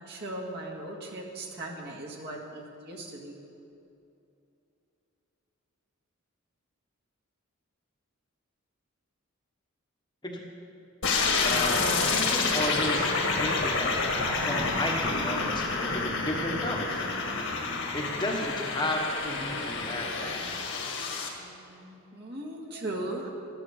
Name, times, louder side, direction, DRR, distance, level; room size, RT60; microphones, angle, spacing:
voice 1, 0.0-3.4 21.4-23.3, right 1 dB, 50° right, -2 dB, 2.0 m, -38 dB
sound 1, 11.0-21.3, left 4 dB, 55° left, 1.9 m, -28 dB
voice 2, 11.4-17.0 17.9-20.6, left 1 dB, 20° left, 0 dB, 1.3 m, -33 dB
12.5 x 10.0 x 7.2 m, 2.7 s
head